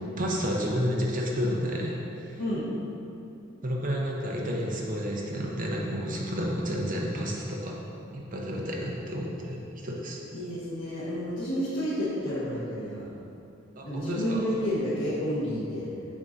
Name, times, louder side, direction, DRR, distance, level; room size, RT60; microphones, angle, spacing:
voice 1, 0.0-2.0 2.2-2.4 3.6-7.8 8.1-10.2 13.8-14.5, equal, 45° right, -2 dB, 0.9 m, -30 dB
voice 2, 10.3-13.1 13.8-15.9, equal, 85° left, -11 dB, 1.2 m, -30 dB
7.4 x 2.7 x 5.0 m, 2.7 s
head